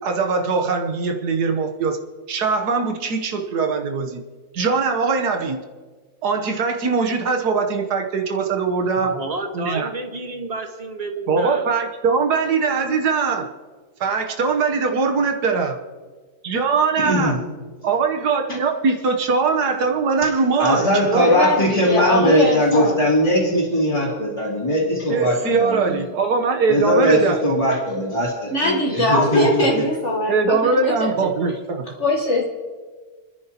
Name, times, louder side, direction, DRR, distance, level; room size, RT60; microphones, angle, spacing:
voice 1, 0.0-2.0 2.3-4.2 4.5-5.6 6.2-9.1 9.5-9.9 11.3-13.5 14.0-15.7 16.4-17.3 17.8-21.3 25.1-27.4 29.7-29.8 30.3-31.8, right 4 dB, 85° right, 3 dB, 1.6 m, -21 dB
voice 2, 9.0-11.7, right 2 dB, 25° right, 4 dB, 1.4 m, -30 dB
voice 3, 17.0-17.4 20.2-20.3 20.6-26.1 26.7-29.8, equal, 20° left, -8 dB, 3.0 m, -20 dB
voice 4, 21.2-23.0 28.5-30.6 30.8-31.1 32.0-32.4, left 2 dB, 50° left, -2 dB, 1.7 m, -21 dB
29.5 x 10.5 x 2.9 m, 1.4 s
omnidirectional pair, 1.6 m